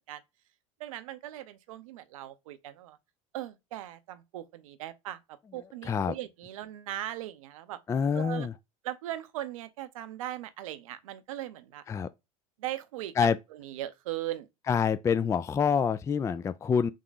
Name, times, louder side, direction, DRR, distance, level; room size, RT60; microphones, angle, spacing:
voice 1, 0.8-3.0 3.3-5.2 5.5-7.8 8.1-8.5 8.8-11.8 12.6-13.1 13.6-14.5, right 13 dB, 80° right, 0.7 m, -39 dB
voice 2, 5.6-6.1 7.9-8.5 11.9-12.1 13.2-13.4 14.7-16.9, left 6 dB, 15° left, 0.3 m, -27 dB
3.6 x 3.1 x 3.9 m
hypercardioid pair, 90°, 17 cm